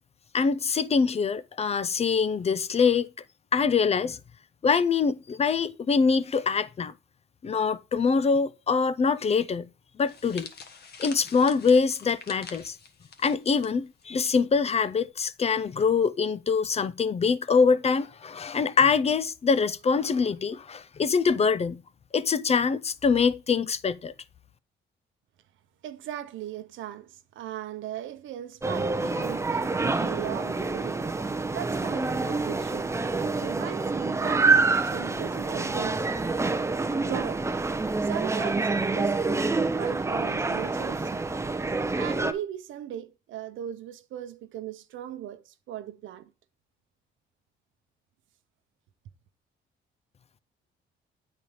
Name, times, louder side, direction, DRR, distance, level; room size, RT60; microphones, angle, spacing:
voice 1, 0.3-3.1 3.5-4.2 4.6-6.9 7.4-9.7 10.0-10.5 11.0-12.8 13.2-21.8 22.1-24.1, left 5 dB, 30° left, 0.4 m, -24 dB
sound 1, 10.1-14.3 14.6-14.8 15.7-16.0, left 5 dB, 55° left, 1.2 m, -46 dB
voice 2, 25.8-31.0 31.5-36.1 37.0-37.4 38.0-41.2 41.9-46.3, right 11 dB, 80° right, 0.7 m, -38 dB
sound 2, 28.6-42.3, right 3 dB, 15° right, 0.6 m, -27 dB
8.4 x 4.2 x 4.7 m
cardioid pair, 90°, 20 cm